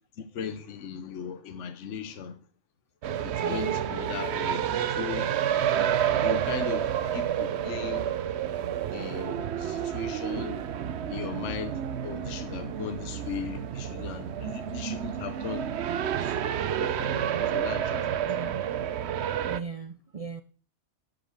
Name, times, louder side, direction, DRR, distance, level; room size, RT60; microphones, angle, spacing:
voice 1, 0.2-2.4 3.2-5.3 6.2-8.1 8.9-10.7 11.1-15.7 16.2-18.3, left 7 dB, 75° left, 1.2 m, -38 dB
sound 1, 3.0-19.6, right 9 dB, 65° right, 0.9 m, -29 dB
voice 2, 3.4-3.8 18.3-18.6 19.5-20.4, right 5 dB, 50° right, 0.4 m, -38 dB
11.0 x 6.6 x 6.4 m
omnidirectional pair, 1.3 m